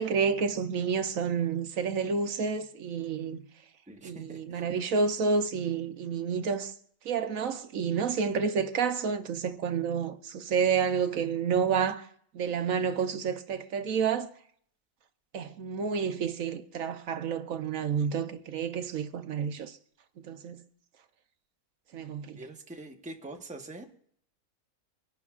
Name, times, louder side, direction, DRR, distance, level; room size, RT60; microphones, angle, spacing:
voice 1, 0.0-3.4 4.0-6.7 7.0-12.1 12.3-14.3 15.3-19.8 20.2-20.6 21.9-22.4, right 6 dB, 70° right, 1.2 m, -29 dB
voice 2, 3.9-4.7 22.3-23.9, right 2 dB, 5° right, 0.9 m, -44 dB
25.0 x 11.5 x 2.4 m
omnidirectional pair, 1.5 m